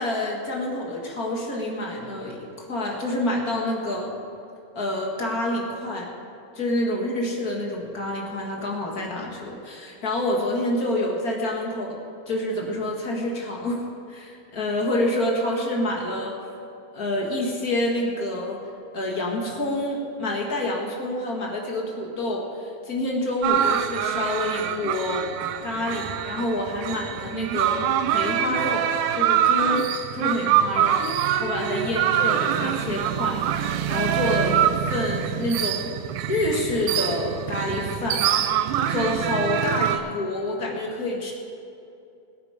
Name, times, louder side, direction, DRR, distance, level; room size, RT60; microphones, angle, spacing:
voice 1, 0.0-4.1 4.7-6.1 6.5-12.0 12.2-13.8 14.1-16.4 16.9-18.6 18.9-25.3 25.6-27.8 28.1-29.9 30.1-35.9 36.3-41.3, left 1 dB, 35° left, -1 dB, 1.5 m, -27 dB
sound 1, 23.4-40.0, right 10 dB, 80° right, 1.9 m, -25 dB
21.5 x 8.8 x 5.0 m, 2.6 s
omnidirectional pair, 4.2 m